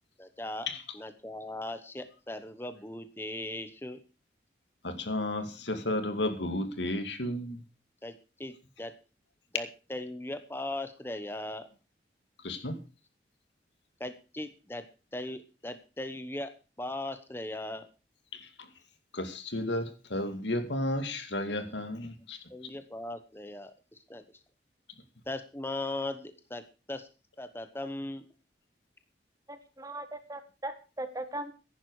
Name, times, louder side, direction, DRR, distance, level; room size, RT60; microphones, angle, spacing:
voice 1, 0.2-0.7 0.9-4.0 8.0-8.1 8.4-8.9 9.5-11.7 14.0-14.8 15.1-16.5 16.8-17.9 22.2-24.2 25.3-26.6 26.9-27.1 27.4-28.2, left 2 dB, 15° left, 1.0 m, -38 dB
voice 2, 4.8-7.6 12.4-12.8 18.3-18.5 19.1-22.4, left 1 dB, 90° left, 2.3 m, -33 dB
voice 3, 29.5-31.5, right 1 dB, 20° right, 1.5 m, -39 dB
14.5 x 11.0 x 4.8 m
head